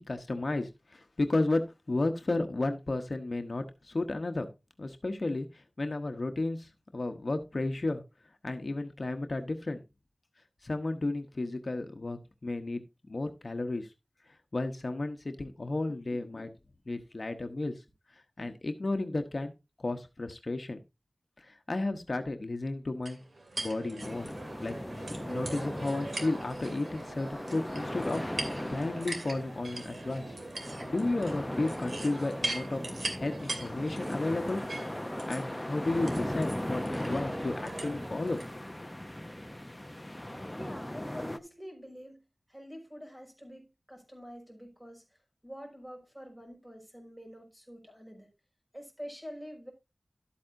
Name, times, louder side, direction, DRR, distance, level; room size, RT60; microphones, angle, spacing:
voice 1, 0.0-4.5 4.8-8.0 8.4-9.8 10.6-13.9 14.5-16.5 16.9-17.7 18.1-19.5 19.8-20.8 21.4-23.2 23.6-24.3 24.6-24.7 25.0-28.2 28.6-30.3 30.8-32.8 33.2-34.6 35.3-38.4 38.8-38.9, left 2 dB, 60° left, 1.0 m, -33 dB
sound 1, 23.1-38.5, right 2 dB, 85° right, 2.4 m, -41 dB
sound 2, 24.0-41.4, left 1 dB, 15° left, 0.7 m, -38 dB
voice 2, 40.5-42.2 42.5-45.0 45.4-48.3 48.7-49.7, equal, 10° right, 5.3 m, -46 dB
12.5 x 8.4 x 2.6 m
wide cardioid pair, 60°, 0 cm